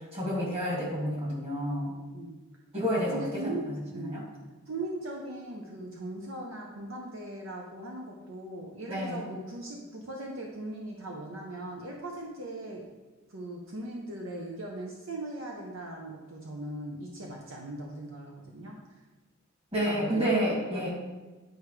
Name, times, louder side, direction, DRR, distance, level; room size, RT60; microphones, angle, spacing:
voice 1, 0.1-1.9 2.7-3.5 3.9-4.2 8.9-9.2 19.7-20.9, equal, 30° right, -5 dB, 2.4 m, -29 dB
voice 2, 3.1-4.2 4.7-12.9 13.3-18.7 19.8-20.4 20.7-20.9, right 1 dB, 70° right, -1 dB, 0.9 m, -39 dB
10.5 x 4.7 x 3.3 m, 1.2 s
head